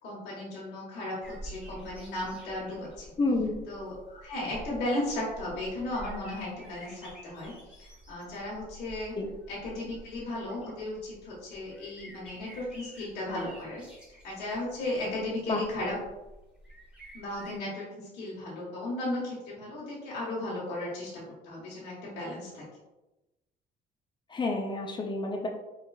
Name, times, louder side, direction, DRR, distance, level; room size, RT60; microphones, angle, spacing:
voice 1, 0.0-3.1 3.7-9.1 9.5-13.8 14.2-16.0 17.1-22.6, left 1 dB, 85° left, -7 dB, 1.3 m, -35 dB
sound 1, 1.2-17.6, right 1 dB, 5° right, 0.9 m, -49 dB
voice 2, 3.2-3.6 9.1-9.3 15.5-15.6 24.3-25.5, left 2 dB, 25° left, 1 dB, 0.4 m, -29 dB
4.6 x 2.4 x 2.3 m, 1.0 s
cardioid pair, 110°, 17 cm